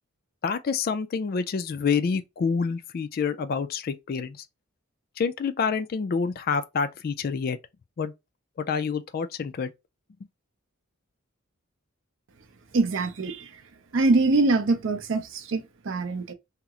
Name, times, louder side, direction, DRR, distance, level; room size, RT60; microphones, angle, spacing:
voice 1, 0.4-4.4 5.2-7.6 8.0-8.1 8.6-9.7, left 5 dB, 45° left, 0.3 m, -27 dB
voice 2, 12.7-13.6 13.9-16.3, right 3 dB, 60° right, 0.5 m, -24 dB
2.8 x 2.0 x 3.5 m
head